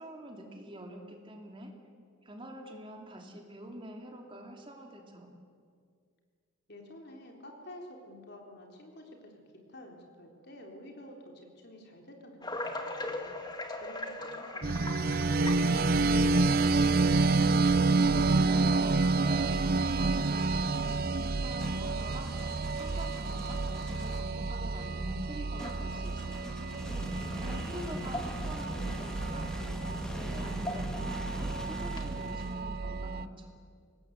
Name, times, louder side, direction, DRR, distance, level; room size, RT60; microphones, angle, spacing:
voice 1, 0.0-1.7 2.2-5.3 18.1-26.4 27.3-33.5, right 1 dB, 25° right, 2 dB, 2.6 m, -46 dB
voice 2, 6.7-9.4 9.7-16.8 27.1-28.0, left 1 dB, 50° left, 1 dB, 3.8 m, -50 dB
sound 1, 12.4-16.3 17.1-17.2 18.2-18.3 19.0-19.3 19.8-19.9 20.3-20.5 21.9-22.0 24.7-24.8 25.6-26.2 27.6-27.7 28.0-28.7 29.0-29.1 30.4-31.2 31.9-32.2, left 2 dB, 20° left, 1.8 m, -40 dB
sound 2, 14.6-33.3, right 3 dB, 45° right, 0.6 m, -29 dB
sound 3, 14.9-16.5 17.4-24.4 25.6-32.9, equal, 5° left, 1.7 m, -43 dB
25.0 x 19.5 x 8.0 m, 2.1 s
head